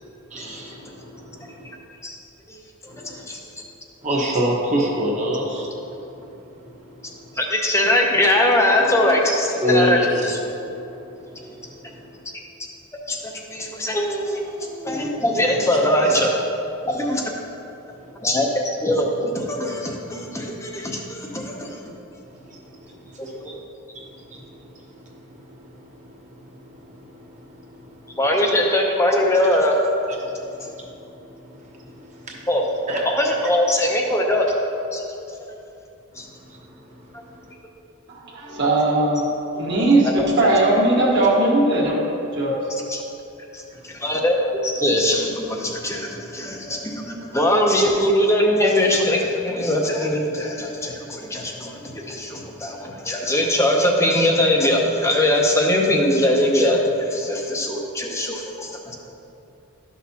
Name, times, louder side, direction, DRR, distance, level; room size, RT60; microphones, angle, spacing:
voice 1, 0.3-1.7 2.9-3.2 4.0-5.7 6.6-6.7 9.6-10.3 16.0-16.1 22.5-22.6 23.4-23.5 23.9-24.0 24.3-24.4 26.4-26.5 32.3-32.4 32.9-33.0, equal, 35° right, -2 dB, 1.2 m, -24 dB
voice 2, 2.5-2.9 3.3-3.4 7.4-10.0 10.3-10.4 13.1-16.3 16.8-17.3 18.2-21.8 23.2-23.5 28.2-29.8 32.5-32.6 33.0-34.5 34.9-35.0 36.2-36.3 40.2-40.3 42.9-43.0 43.5-43.6 43.9-44.4 44.6-58.9, left 1 dB, 15° left, 0 dB, 0.6 m, -21 dB
voice 3, 38.1-39.2 39.5-42.6, right 2 dB, 50° right, -5 dB, 1.7 m, -19 dB
12.5 x 6.1 x 2.8 m, 2.8 s
head